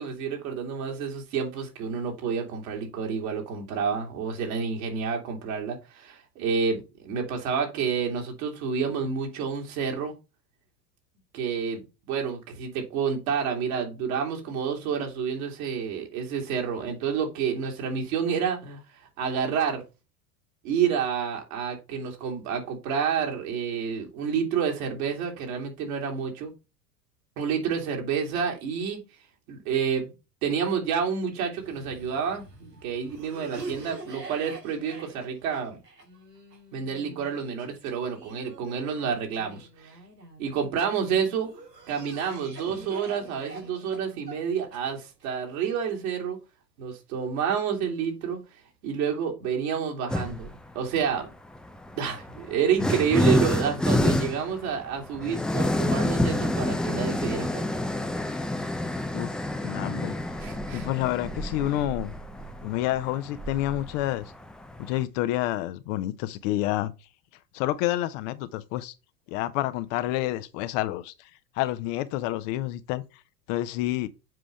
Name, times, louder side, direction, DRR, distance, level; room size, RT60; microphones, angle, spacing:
voice 1, 0.0-10.1 11.3-11.8 12.1-18.8 19.2-19.8 20.6-26.5 27.4-29.0 29.5-30.1 30.4-35.8 36.7-39.9 40.4-41.5 41.9-46.4 46.8-48.4 48.8-51.3 51.9-57.7 60.4-60.9, right 7 dB, 60° right, 2.8 m, -29 dB
Cough, 31.5-40.8 41.3-45.3, right 3 dB, 90° right, 2.4 m, -45 dB
sound 1, 50.1-50.6 51.5-65.0, left 1 dB, ahead, 0.4 m, -28 dB
voice 2, 59.6-60.2 60.7-62.1 62.6-64.3 64.8-66.9 67.5-68.9 69.3-71.1 71.6-73.0 73.5-74.1, left 15 dB, 50° left, 0.8 m, -28 dB
7.7 x 4.9 x 3.3 m
figure-of-eight pair, 85°, 47 cm